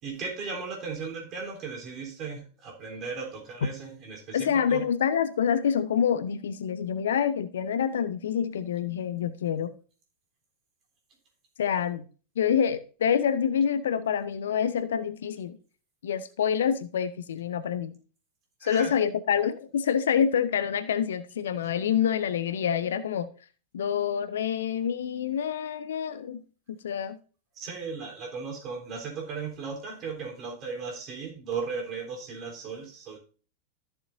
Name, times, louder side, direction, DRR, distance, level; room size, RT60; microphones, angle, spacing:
voice 1, 0.0-4.9 18.6-19.0 27.6-33.2, right 5 dB, 35° right, 3.6 m, -36 dB
voice 2, 4.3-9.7 11.6-12.0 12.4-15.6 16.0-17.9 18.6-23.3 23.7-26.4 26.7-27.2, left 8 dB, 65° left, 0.6 m, -27 dB
14.0 x 7.0 x 2.6 m
figure-of-eight pair, 90°, 0 cm